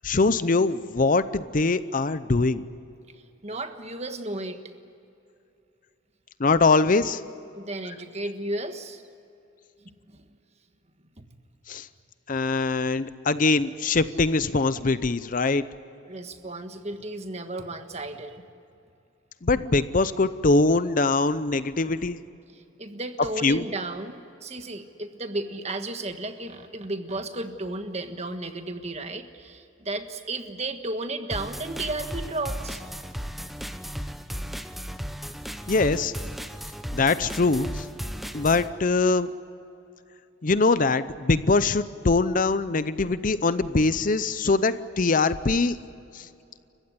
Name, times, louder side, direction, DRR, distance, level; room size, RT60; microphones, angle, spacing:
voice 1, 0.0-2.6 6.4-7.2 11.7-11.9 12.3-15.6 19.4-22.2 23.4-23.6 35.7-36.1 36.9-37.9 38.3-39.3 40.4-45.8 46.1-46.3, left 3 dB, 40° left, 14 dB, 0.6 m, -23 dB
voice 2, 3.4-4.7 7.5-9.0 10.1-10.2 11.2-11.3 14.1-14.2 16.0-18.4 22.5-32.8 45.1-45.2, right 2 dB, 35° right, 7 dB, 1.5 m, -34 dB
sound 1, 31.3-38.7, equal, ahead, 0.9 m, -35 dB
29.5 x 15.5 x 9.7 m, 2.6 s
head